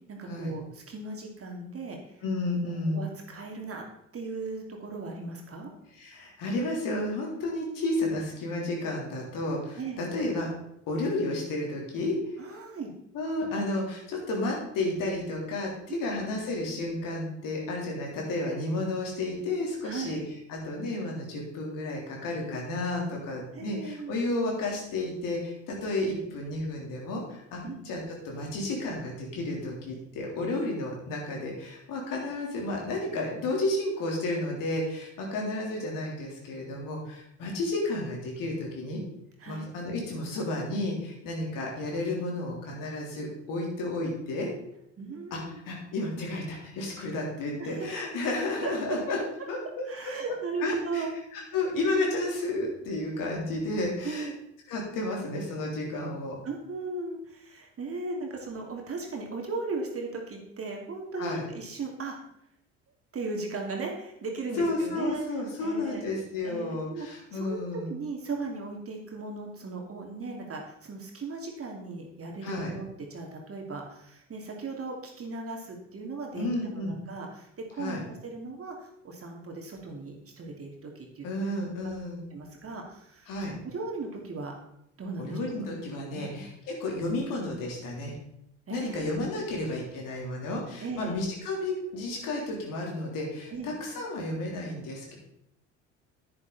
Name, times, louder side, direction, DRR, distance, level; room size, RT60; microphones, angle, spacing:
voice 1, 0.1-2.2 2.9-3.8 4.1-5.7 9.8-10.0 12.4-12.9 15.9-16.2 19.8-20.2 23.5-24.1 27.6-27.8 39.4-39.7 45.0-45.6 47.6-47.9 48.6-49.0 49.9-51.1 54.0-54.3 56.4-62.2 63.1-65.2 65.6-66.1 66.4-67.1 67.3-81.3 82.3-84.5 85.0-85.4 86.1-86.4 88.7-89.2 89.5-89.6 90.8-91.1 93.5-93.7, right 3 dB, 40° right, 1 dB, 2.6 m, -37 dB
voice 2, 2.2-3.0 5.9-10.5 10.9-12.2 13.1-20.2 20.5-39.0 39.5-44.5 45.3-45.4 45.7-49.2 49.5-49.8 50.3-50.4 50.6-51.1 51.3-54.3 54.7-56.4 61.2-61.4 64.6-67.9 72.4-72.7 76.3-77.0 77.8-78.0 81.2-82.3 83.3-83.6 85.2-88.1 88.7-95.1, left 2 dB, 60° left, -1 dB, 3.5 m, -32 dB
9.9 x 9.6 x 4.1 m, 0.76 s
hypercardioid pair, 55°, 37 cm